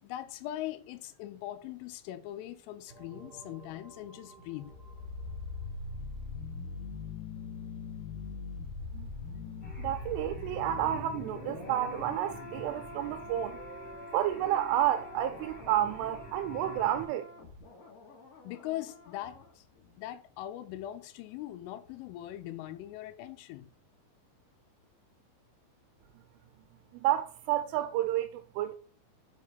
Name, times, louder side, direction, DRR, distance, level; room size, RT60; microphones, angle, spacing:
voice 1, 0.0-4.8 18.4-19.7 20.0-23.7, left 13 dB, 85° left, 3.1 m, -41 dB
sound 1, 2.9-7.3, right 3 dB, 35° right, 0.6 m, -56 dB
sound 2, 4.6-19.5 19.8-19.9, left 4 dB, 55° left, 2.7 m, -43 dB
sound 3, 9.6-17.0, equal, 25° left, 1.1 m, -47 dB
voice 2, 9.8-13.6 14.1-17.3 27.0-28.7, right 12 dB, 85° right, 3.0 m, -30 dB
6.9 x 4.6 x 4.9 m
omnidirectional pair, 5.8 m